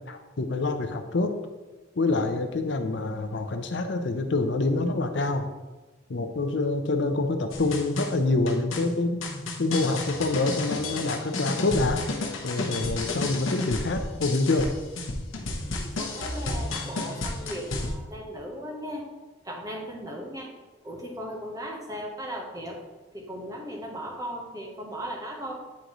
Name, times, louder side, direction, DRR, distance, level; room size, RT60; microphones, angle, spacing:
voice 1, 0.1-1.3 2.0-5.5 6.1-9.2 9.6-12.0 12.4-14.7, left 3 dB, 60° left, 6 dB, 0.6 m, -26 dB
sound 1, 7.5-17.9, left 2 dB, 85° left, 0.9 m, -32 dB
voice 2, 15.6-19.0 19.4-20.5 20.8-22.8 23.1-25.5, equal, 20° right, 0 dB, 0.9 m, -37 dB
9.6 x 3.9 x 3.0 m, 1.2 s
head